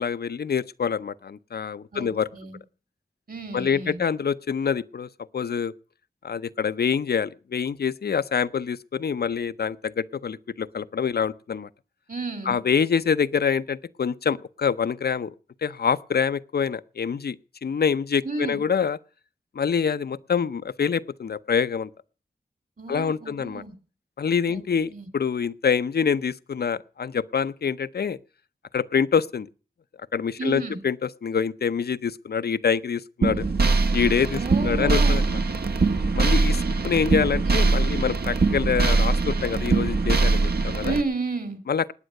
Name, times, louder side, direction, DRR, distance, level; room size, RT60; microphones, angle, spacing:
voice 1, 0.0-2.3 3.5-5.7 6.2-11.7 12.5-15.3 15.6-17.4 17.6-19.0 19.5-21.9 22.9-23.6 24.2-28.2 28.7-29.5 30.1-30.9 31.2-33.5 33.9-35.4 36.1-41.0 41.7-41.9, left 6 dB, 80° left, 0.6 m, -26 dB
voice 2, 1.9-2.6 3.3-4.0 12.1-12.6 18.2-18.6 22.8-23.7 24.5-24.6 24.9-25.1 30.4-30.8 34.3-35.3 36.5-36.7 37.5-37.7 40.8-41.6, right 3 dB, 60° right, 2.8 m, -32 dB
sound 1, 33.2-41.0, right 3 dB, 80° right, 1.3 m, -22 dB
19.5 x 9.1 x 6.5 m
wide cardioid pair, 60°, 16 cm